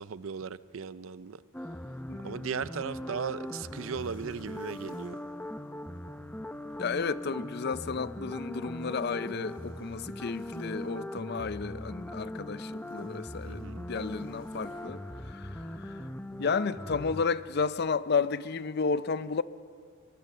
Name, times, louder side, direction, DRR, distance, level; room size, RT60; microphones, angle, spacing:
voice 1, 0.0-1.4 2.2-5.2 13.5-13.9, right 6 dB, 75° right, 0.5 m, -37 dB
sound 1, 1.5-17.2, left 1 dB, 5° left, 0.6 m, -40 dB
voice 2, 2.1-2.4 6.8-16.1 16.4-19.4, left 5 dB, 50° left, 0.5 m, -32 dB
sound 2, 3.2-6.0 6.4-6.5 6.7-7.2 8.2-8.3 8.9-11.2 11.5-11.6 11.9-15.1, left 2 dB, 75° left, 6.6 m, -65 dB
23.5 x 23.0 x 6.7 m
head